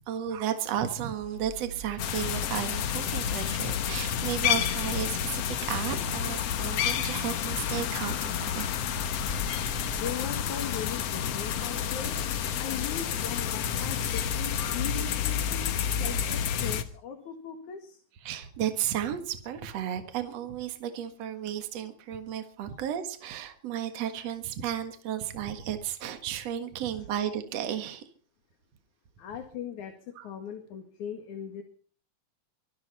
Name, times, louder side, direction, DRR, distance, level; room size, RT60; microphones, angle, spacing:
voice 1, 0.1-8.7 18.2-28.0 30.2-30.3, right 10 dB, 60° right, 8 dB, 2.7 m, -33 dB
sound 1, 1.2-13.1, right 1 dB, 30° right, 6.9 m, -47 dB
sound 2, 2.0-16.8, left 9 dB, 60° left, 2.1 m, -30 dB
voice 2, 9.9-12.2 12.6-18.0 29.2-31.6, left 8 dB, 75° left, 5 dB, 3.4 m, -39 dB
24.0 x 13.5 x 4.2 m, 0.43 s
omnidirectional pair, 3.4 m